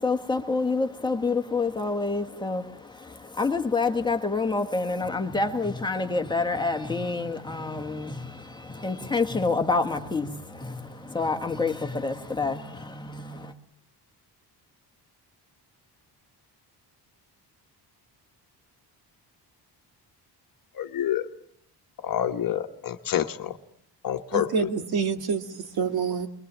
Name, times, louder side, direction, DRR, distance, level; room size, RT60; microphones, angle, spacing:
voice 1, 0.0-13.5, left 3 dB, 10° left, 5 dB, 1.5 m, -28 dB
voice 2, 20.8-21.3 22.0-23.6 24.0-24.7, left 10 dB, 55° left, 7 dB, 1.2 m, -28 dB
voice 3, 24.3-26.3, right 6 dB, 60° right, 7 dB, 2.0 m, -27 dB
25.0 x 22.0 x 7.4 m, 0.72 s
wide cardioid pair, 175°, 41 cm